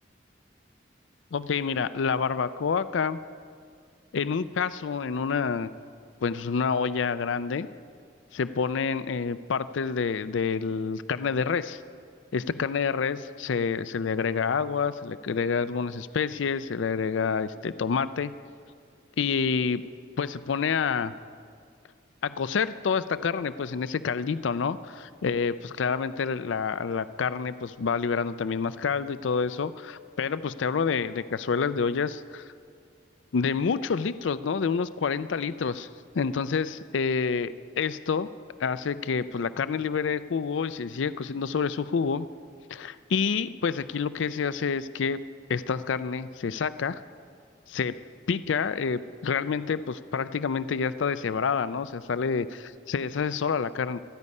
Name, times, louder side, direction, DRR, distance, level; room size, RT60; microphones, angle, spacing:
voice 1, 1.3-3.2 4.1-5.7 6.2-7.7 8.3-11.8 12.3-18.3 19.2-19.8 20.2-21.1 22.2-32.5 33.3-35.9 36.1-38.3 38.6-42.3 42.7-45.2 45.5-47.0 47.7-48.0 48.3-54.0, left 5 dB, 75° left, 14 dB, 0.4 m, -28 dB
26.0 x 9.7 x 5.4 m, 2.2 s
head